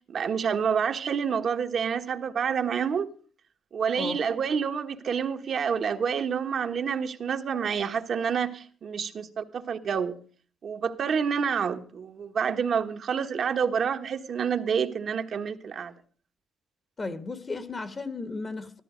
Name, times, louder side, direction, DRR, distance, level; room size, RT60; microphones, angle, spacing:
voice 1, 0.1-3.1 3.7-10.2 10.6-15.9, right 7 dB, 55° right, 1.4 m, -28 dB
voice 2, 17.0-18.8, left 3 dB, 30° left, 1.5 m, -34 dB
14.0 x 13.5 x 5.2 m
cardioid pair, 90°, 0 cm